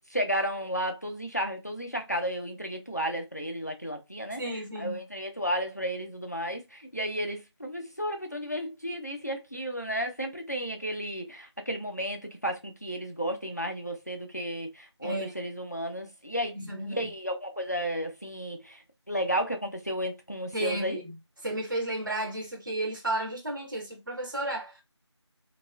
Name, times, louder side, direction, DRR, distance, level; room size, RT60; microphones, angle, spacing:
voice 1, 0.1-4.4 4.8-16.6 16.9-18.8 19.1-21.0, equal, 35° left, 0.4 m, -33 dB
voice 2, 4.4-5.0 15.0-15.3 16.5-17.0 20.5-21.1 21.4-24.8, right 1 dB, 45° right, 0.5 m, -33 dB
2.8 x 2.3 x 2.2 m
figure-of-eight pair, 175°, 15 cm